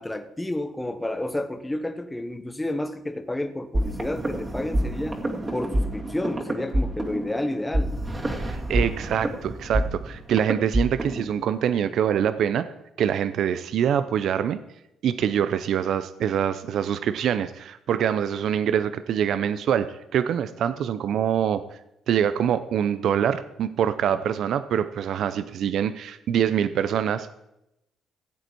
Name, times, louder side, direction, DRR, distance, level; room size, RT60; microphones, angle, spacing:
voice 1, 0.0-5.2 5.5-8.0, left 1 dB, 10° left, 1.0 m, -30 dB
sound 1, 3.7-11.3, right 1 dB, 25° right, 2.1 m, -27 dB
voice 2, 8.4-12.7 13.0-14.6 15.0-19.9 20.1-21.6 22.1-27.3, right 9 dB, 70° right, 0.5 m, -24 dB
16.0 x 8.1 x 4.4 m
cardioid pair, 90°, 0 cm